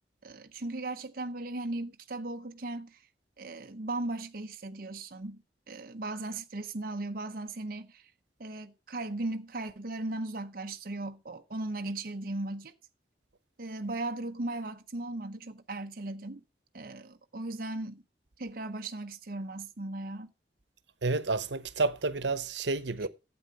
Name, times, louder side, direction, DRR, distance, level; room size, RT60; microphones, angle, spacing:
voice 1, 0.2-3.0 3.4-8.1 8.4-12.7 13.6-16.4 16.7-18.0 18.4-20.3, right 2 dB, 55° right, 0.8 m, -37 dB
voice 2, 21.0-23.1, right 3 dB, 85° right, 1.0 m, -30 dB
12.0 x 8.7 x 5.2 m
head